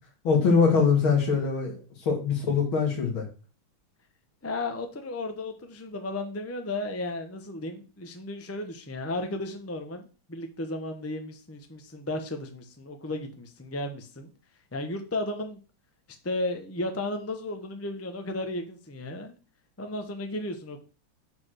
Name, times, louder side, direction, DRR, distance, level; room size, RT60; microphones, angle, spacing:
voice 1, 0.2-1.7 2.1-3.2, left 5 dB, 85° left, 2 dB, 2.9 m, -22 dB
voice 2, 4.4-14.3 14.7-15.6 16.2-19.3 19.8-20.8, left 2 dB, 15° left, 6 dB, 0.4 m, -34 dB
5.8 x 4.8 x 6.3 m, 0.34 s
omnidirectional pair, 2.2 m